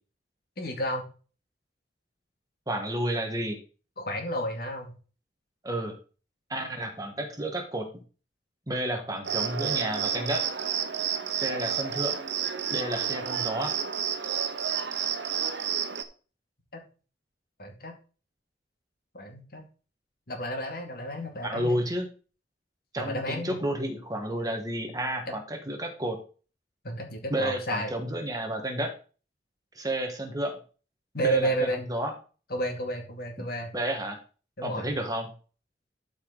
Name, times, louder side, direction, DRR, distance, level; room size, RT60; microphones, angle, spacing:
voice 1, 0.6-1.1 4.0-4.9 16.7-16.8 17.6-17.9 19.1-19.6 20.3-21.9 23.0-23.6 25.2-25.3 26.8-27.9 31.1-31.8 32.5-33.7 34.6-34.9, right 1 dB, 55° left, 2 dB, 2.4 m, -31 dB
voice 2, 2.7-3.6 5.6-6.0 6.5-7.9 8.7-10.4 11.4-12.2 12.7-13.7 21.4-22.1 22.9-26.2 27.3-28.9 29.7-30.6 31.2-32.1 33.7-34.2 34.6-35.3, right 1 dB, 20° right, 4 dB, 1.5 m, -31 dB
Cricket, 9.2-16.0, right 8 dB, 90° right, 1.0 m, -30 dB
12.5 x 5.0 x 4.0 m, 0.37 s
head